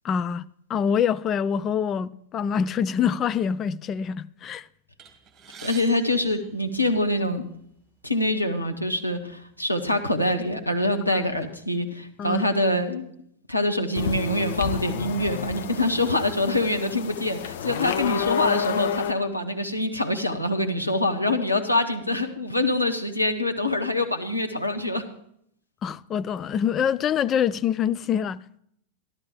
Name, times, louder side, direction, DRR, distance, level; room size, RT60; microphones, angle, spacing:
voice 1, 0.0-4.7 11.1-11.2 12.2-12.5 25.8-28.6, left 8 dB, 30° left, 0.4 m, -25 dB
sound 1, 5.0-7.3 8.2-8.3 8.6-8.8 9.6-9.8 10.3-11.4, right 6 dB, 25° right, 2.3 m, -47 dB
voice 2, 5.6-7.4 8.0-13.0 13.5-25.0, left 1 dB, 85° left, 1.2 m, -25 dB
sound 2, 13.9-19.1, left 8 dB, 55° left, 0.8 m, -30 dB
13.0 x 12.0 x 5.0 m
figure-of-eight pair, 90°, 0 cm